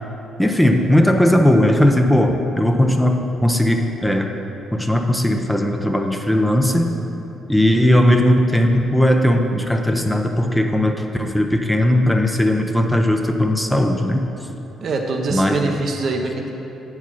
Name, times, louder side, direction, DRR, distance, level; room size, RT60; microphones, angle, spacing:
voice 1, 0.4-4.3 4.7-6.9 7.5-14.2 15.3-15.8, left 1 dB, 5° left, 4 dB, 0.7 m, -17 dB
voice 2, 14.8-16.5, right 3 dB, 60° right, 2 dB, 0.8 m, -23 dB
8.1 x 4.8 x 5.7 m, 3.0 s
hypercardioid pair, 50°, 0 cm